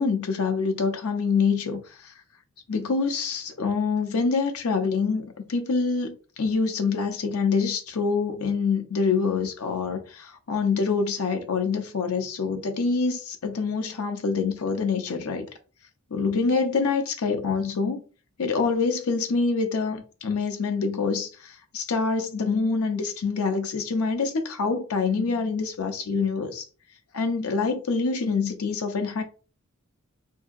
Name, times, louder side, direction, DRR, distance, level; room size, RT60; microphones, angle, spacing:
voice 1, 0.0-2.1 2.7-15.5 16.1-18.0 18.4-26.6 27.1-29.2, left 4 dB, 85° left, 0.6 m, -26 dB
2.7 x 2.6 x 2.4 m
head